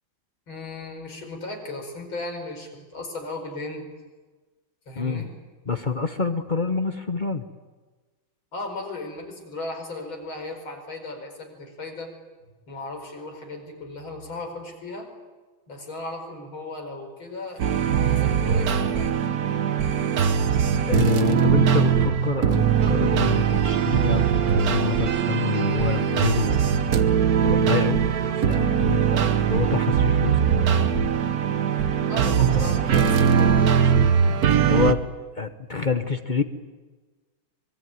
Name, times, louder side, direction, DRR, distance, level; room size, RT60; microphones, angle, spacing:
voice 1, 0.5-3.9 4.9-5.3 8.5-12.1 12.7-15.1 15.7-19.1 32.1-33.8, left 2 dB, 75° left, 3 dB, 5.7 m, -36 dB
voice 2, 5.7-7.4 20.9-26.6 27.4-28.0 28.5-30.7 34.6-35.0 35.4-36.4, left 5 dB, 35° left, 8 dB, 0.8 m, -27 dB
sound 1, 17.6-34.9, right 7 dB, 55° right, 1.4 m, -21 dB
24.5 x 22.0 x 9.4 m, 1.3 s
omnidirectional pair, 2.2 m